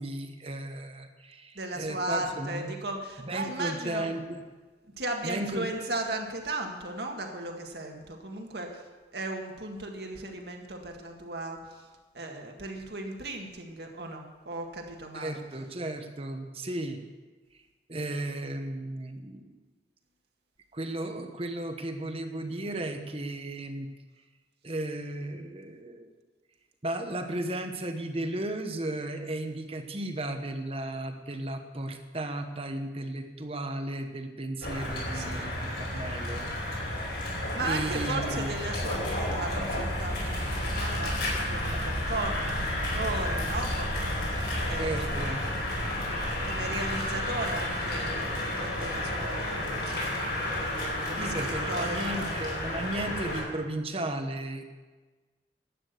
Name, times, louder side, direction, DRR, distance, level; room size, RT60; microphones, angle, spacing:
voice 1, 0.0-2.7 3.2-4.4 5.2-5.7 15.1-17.0 17.9-19.5 20.7-23.9 24.6-26.1 26.8-36.5 37.6-38.5 44.8-45.5 51.2-54.6, right 1 dB, 35° right, 6 dB, 1.1 m, -35 dB
voice 2, 1.6-4.1 5.0-8.8 9.1-11.9 12.1-15.4 35.1-35.5 37.5-45.4 46.0-52.7, right 2 dB, 65° right, 2 dB, 1.9 m, -36 dB
sound 1, 34.6-53.4, left 1 dB, 65° left, 4.8 m, -31 dB
12.0 x 8.7 x 8.3 m, 1.3 s
head